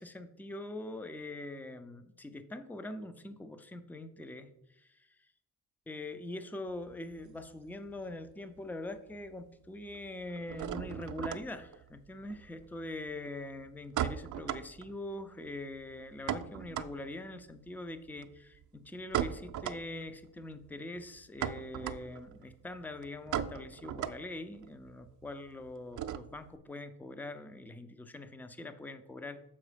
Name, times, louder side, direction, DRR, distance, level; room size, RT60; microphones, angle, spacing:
voice 1, 0.0-4.5 4.8-5.1 5.9-29.4, left 2 dB, 5° left, 10 dB, 0.5 m, -43 dB
sound 1, 6.7-8.3 8.6-9.3 9.5-26.6, right 10 dB, 55° right, 0.5 m, -39 dB
7.2 x 4.7 x 5.0 m, 0.83 s
cardioid pair, 125°, 37 cm